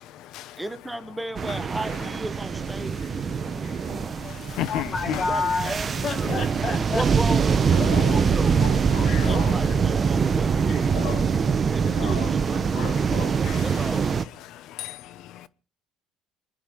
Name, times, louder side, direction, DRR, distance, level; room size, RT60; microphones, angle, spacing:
voice 1, 0.6-4.0 5.3-6.4 6.9-8.6 9.1-11.3 11.7-12.6 13.6-14.3, right 1 dB, 5° right, 1.1 m, -35 dB
sound 1, 1.3-14.2, right 6 dB, 30° right, 1.0 m, -24 dB
voice 2, 3.6-5.7 6.0-7.0 9.8-10.0, left 4 dB, 40° left, 3.4 m, -30 dB
voice 3, 4.6-5.2 7.9-8.2 8.6-9.4 11.0-11.1 12.0-12.1 12.8-13.3, left 13 dB, 70° left, 0.9 m, -32 dB
26.0 x 10.5 x 5.2 m
cardioid pair, 125°, 0 cm